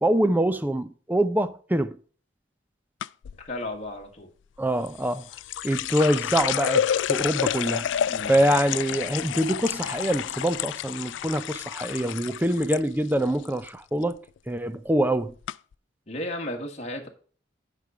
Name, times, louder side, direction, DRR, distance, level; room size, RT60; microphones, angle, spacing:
voice 1, 0.0-2.0 4.6-5.2 5.6-7.9 8.3-14.2 14.5-15.3, right 1 dB, 10° right, 0.5 m, -24 dB
sound 1, 3.0-3.4 4.9-12.8 13.1-13.7 14.0-14.4 15.0-15.1 15.5-15.6, left 9 dB, 85° left, 0.3 m, -29 dB
voice 2, 3.4-4.3 8.1-8.4 16.1-17.1, left 1 dB, 35° left, 1.5 m, -34 dB
9.7 x 5.3 x 4.8 m
head